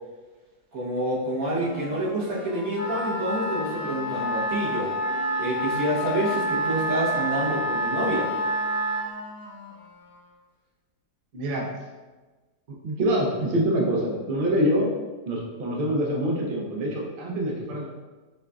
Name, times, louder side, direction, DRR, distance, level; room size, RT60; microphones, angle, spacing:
voice 1, 0.7-4.9 5.4-8.3, right 1 dB, 60° right, -7 dB, 1.5 m, -28 dB
sound 1, 1.6-10.4, left 3 dB, 50° left, 0.3 m, -42 dB
Wind instrument woodwind instrument, 2.7-9.1, equal, 85° left, 1.3 m, -28 dB
voice 2, 11.3-11.7 12.8-14.9 15.3-17.9, equal, 85° right, -2 dB, 0.4 m, -25 dB
5.2 x 2.4 x 2.3 m, 1.3 s
omnidirectional pair, 1.8 m